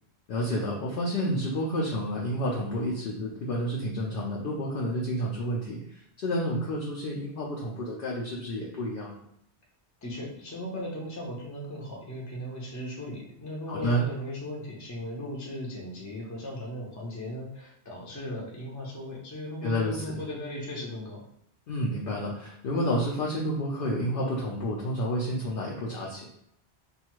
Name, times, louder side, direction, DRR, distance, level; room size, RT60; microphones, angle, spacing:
voice 1, 0.3-9.1 13.7-14.1 19.6-20.2 21.7-26.3, equal, 65° left, -3 dB, 0.7 m, -30 dB
voice 2, 10.0-21.2, equal, 20° left, -2 dB, 0.5 m, -37 dB
2.5 x 2.3 x 3.0 m, 0.73 s
omnidirectional pair, 1.1 m